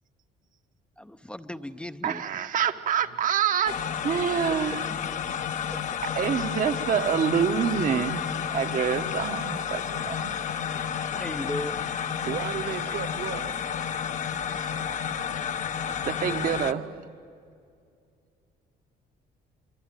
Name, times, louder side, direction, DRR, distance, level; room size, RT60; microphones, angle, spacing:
voice 1, 1.0-2.2 5.7-6.0 11.1-11.8, left 1 dB, 5° left, 9 dB, 0.6 m, -36 dB
voice 2, 2.0-3.8 4.0-4.9 6.0-8.2 8.5-10.2 16.0-16.8, right 8 dB, 50° right, 9 dB, 1.2 m, -26 dB
sound 1, 3.7-16.7, left 8 dB, 45° left, 0.9 m, -31 dB
voice 3, 10.0-10.5 10.7-10.9 12.2-13.5 16.4-17.0, right 9 dB, 75° right, 6 dB, 1.3 m, -36 dB
24.5 x 24.0 x 9.1 m, 2.4 s
cardioid pair, 110°, 17 cm